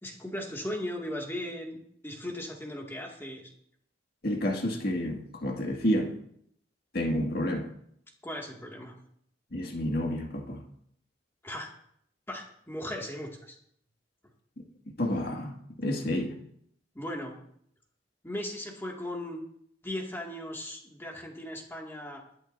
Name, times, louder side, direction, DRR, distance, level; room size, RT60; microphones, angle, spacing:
voice 1, 0.0-3.5 8.2-9.0 11.4-11.8 12.3-13.6 16.9-17.4 18.2-19.4 19.8-22.2, left 1 dB, 15° left, 2.2 m, -37 dB
voice 2, 4.2-6.1 6.9-7.7 9.5-10.6 15.0-16.3, equal, 60° left, 2.1 m, -29 dB
22.5 x 10.5 x 2.7 m
head